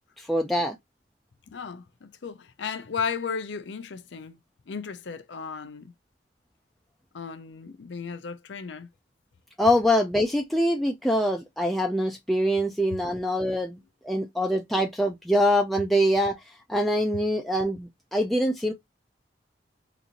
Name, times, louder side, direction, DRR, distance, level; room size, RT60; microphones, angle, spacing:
voice 1, 0.2-0.7 9.6-13.8 14.0-16.4 16.7-18.7, equal, ahead, 0.4 m, -24 dB
voice 2, 1.5-4.4 4.7-5.9 7.1-8.9, left 6 dB, 75° left, 0.5 m, -35 dB
3.9 x 2.6 x 2.9 m
head